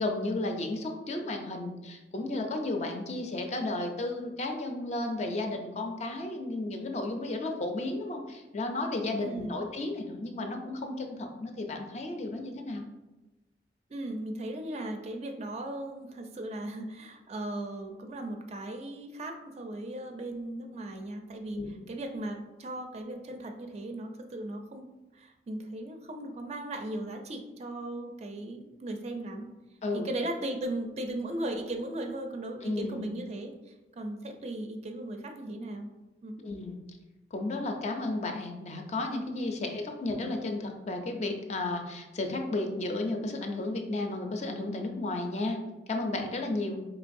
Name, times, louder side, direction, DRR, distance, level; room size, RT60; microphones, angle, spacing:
voice 1, 0.0-12.8 21.6-21.7 29.8-30.1 32.6-33.1 36.4-36.8 37.3-45.6 45.9-46.8, left 2 dB, 40° left, 4 dB, 0.4 m, -33 dB
voice 2, 9.2-9.5 13.9-21.6 21.9-24.9 25.1-29.5 29.9-35.9 36.2-36.4, right 1 dB, 40° right, 4 dB, 0.4 m, -37 dB
4.5 x 3.0 x 2.6 m, 1.0 s
head